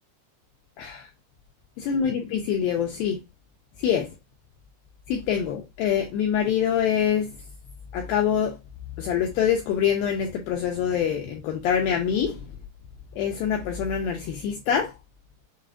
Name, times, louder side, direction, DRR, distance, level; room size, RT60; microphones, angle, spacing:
voice 1, 1.8-3.2 3.8-4.1 5.1-7.3 7.9-8.6 9.0-12.4 13.2-14.9, left 8 dB, 85° left, 2.1 m, -25 dB
7.0 x 2.4 x 2.4 m
omnidirectional pair, 4.8 m